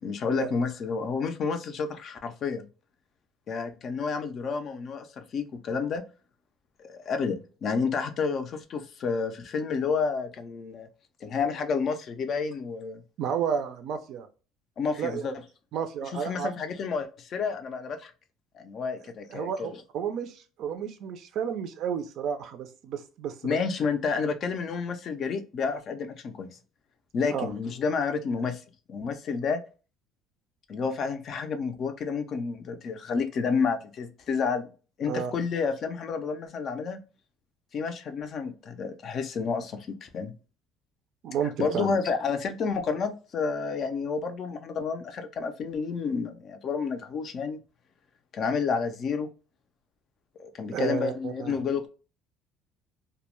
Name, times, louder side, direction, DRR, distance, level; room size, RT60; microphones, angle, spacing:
voice 1, 0.0-2.7 3.5-6.0 6.8-10.9 11.2-13.0 14.8-15.3 16.2-18.1 18.5-19.8 23.4-26.5 27.1-28.6 28.9-29.6 30.7-34.7 35.0-37.0 37.7-40.3 41.6-47.6 48.3-49.3 50.4-51.9, left 5 dB, 45° left, 0.4 m, -30 dB
voice 2, 13.2-14.3 15.0-15.3 15.7-16.5 19.3-23.6 27.3-27.5 35.1-35.3 41.2-41.9 50.7-51.6, right 7 dB, 60° right, 0.4 m, -32 dB
2.1 x 2.0 x 2.9 m
cardioid pair, 135°, 0 cm